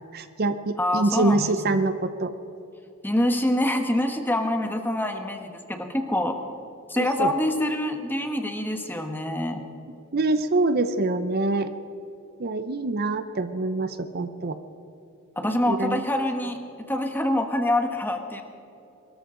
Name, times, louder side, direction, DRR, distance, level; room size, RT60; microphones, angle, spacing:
voice 1, 0.1-2.3 7.0-7.3 10.1-11.7 12.4-14.6 15.7-16.0, right 2 dB, 45° right, 10 dB, 0.6 m, -25 dB
voice 2, 0.8-1.5 3.0-6.4 6.9-9.6 15.4-18.4, left 1 dB, 10° left, 5 dB, 1.2 m, -25 dB
22.5 x 13.5 x 3.8 m, 2.9 s
head